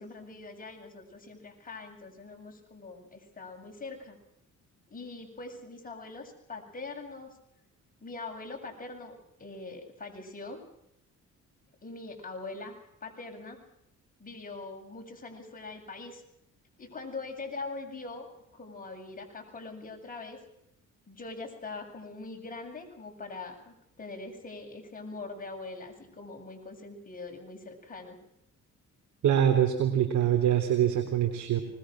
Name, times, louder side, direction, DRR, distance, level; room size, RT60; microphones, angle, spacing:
voice 1, 0.0-4.2 4.9-7.4 8.0-9.1 9.4-10.6 11.8-13.6 14.2-16.2 16.8-18.3 18.5-20.4 21.1-28.2, left 3 dB, 30° left, 2 dB, 8.0 m, -42 dB
voice 2, 29.2-31.6, right 10 dB, 70° right, 4 dB, 3.8 m, -24 dB
25.0 x 21.0 x 6.4 m, 0.79 s
cardioid pair, 90°, 30 cm